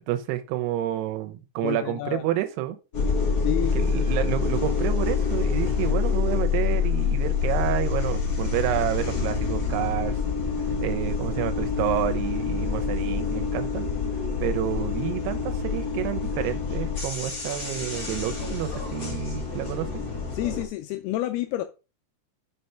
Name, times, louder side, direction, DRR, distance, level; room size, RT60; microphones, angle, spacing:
voice 1, 0.1-2.8 3.7-10.2 10.8-13.9 14.4-19.9, right 13 dB, 85° right, 2.9 m, -29 dB
voice 2, 1.6-2.2 3.4-4.1 20.3-21.6, left 15 dB, 80° left, 2.6 m, -30 dB
sound 1, 2.9-20.6, left 5 dB, 35° left, 1.8 m, -27 dB
6.6 x 5.1 x 5.6 m
omnidirectional pair, 4.6 m